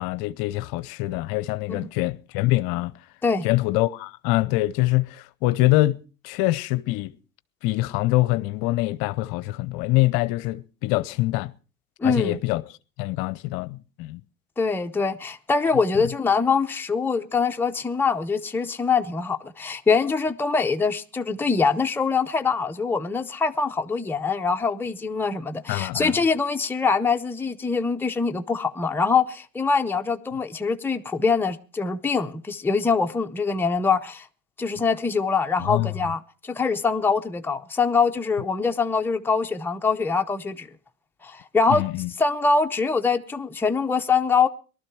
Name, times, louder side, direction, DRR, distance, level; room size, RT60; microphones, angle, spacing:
voice 1, 0.0-2.9 3.4-6.0 6.2-7.1 7.6-11.5 12.0-12.6 13.0-14.2 25.7-26.1 35.6-35.9 41.7-42.1, left 18 dB, 55° left, 0.7 m, -24 dB
voice 2, 12.0-12.4 14.6-34.3 34.6-40.7 41.2-41.9 42.2-44.5, left 4 dB, 5° left, 0.7 m, -24 dB
19.0 x 12.5 x 4.6 m
hypercardioid pair, 90°, 44 cm